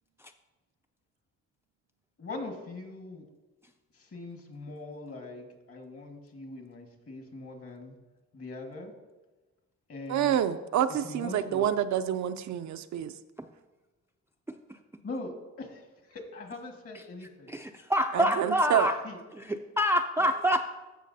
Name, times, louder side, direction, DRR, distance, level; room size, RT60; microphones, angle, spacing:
voice 1, 2.2-3.2 3.9-7.9 8.3-8.9 9.9-10.3 11.0-11.7 15.0-17.5 18.1-18.5 19.0-19.2 20.2-20.3, left 2 dB, 50° left, 3 dB, 1.7 m, -42 dB
voice 2, 10.1-13.1 18.1-18.9, right 10 dB, 70° right, 10 dB, 0.5 m, -28 dB
voice 3, 14.5-14.8 17.5-19.0 19.3-20.7, equal, 10° right, 5 dB, 0.4 m, -27 dB
14.0 x 5.8 x 2.7 m, 1.1 s
cardioid pair, 80°, 30 cm